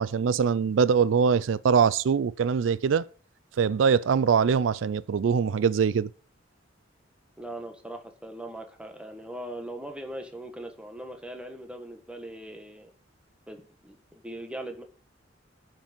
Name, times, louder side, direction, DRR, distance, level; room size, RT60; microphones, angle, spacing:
voice 1, 0.0-3.1 3.6-6.1, right 6 dB, 80° right, 0.4 m, -23 dB
voice 2, 7.4-12.9 13.5-14.8, right 1 dB, 5° right, 1.5 m, -40 dB
8.8 x 6.0 x 7.0 m
head